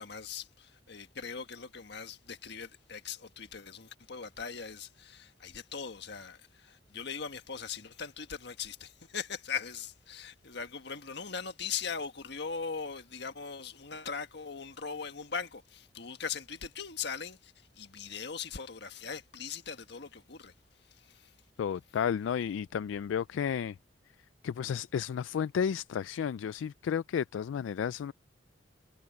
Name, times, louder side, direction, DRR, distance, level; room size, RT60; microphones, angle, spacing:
voice 1, 0.0-21.4, left 6 dB, 60° left, 1.6 m, -40 dB
voice 2, 21.6-23.8 24.4-28.1, left 7 dB, 80° left, 0.3 m, -32 dB
head